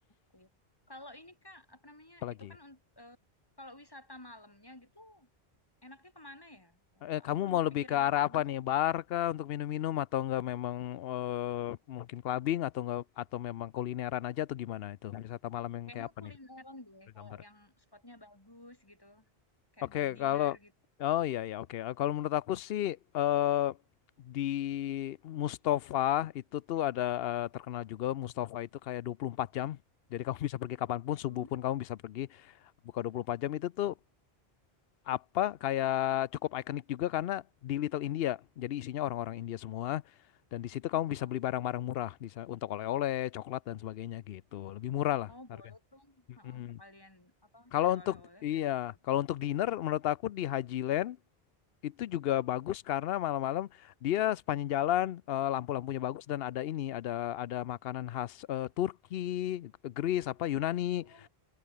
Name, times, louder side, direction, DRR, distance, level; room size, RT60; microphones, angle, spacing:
voice 1, 0.9-3.2 3.6-5.3 5.8-8.7 15.9-19.2 19.7-20.7 31.3-31.5 41.2-41.7 45.3-48.9 61.0-61.3, left 1 dB, 20° left, 3.1 m, -53 dB
voice 2, 7.0-16.1 19.9-20.6 21.0-23.8 24.2-29.8 30.1-32.5 32.9-33.9 35.1-40.0 40.5-45.3 46.4-46.8 47.7-51.2 51.8-61.3, left 12 dB, 75° left, 0.8 m, -32 dB
omnidirectional pair, 1.0 m